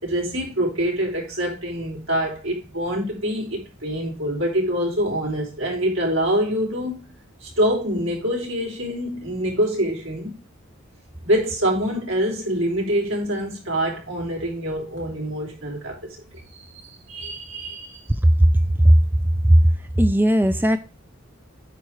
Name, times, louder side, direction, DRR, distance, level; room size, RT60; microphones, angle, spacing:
voice 1, 0.0-7.0 7.4-10.4 11.2-18.0, equal, 80° right, 4.2 m, -25 dB
voice 2, 20.0-20.8, right 1 dB, 10° right, 0.4 m, -15 dB
9.1 x 4.3 x 4.7 m
head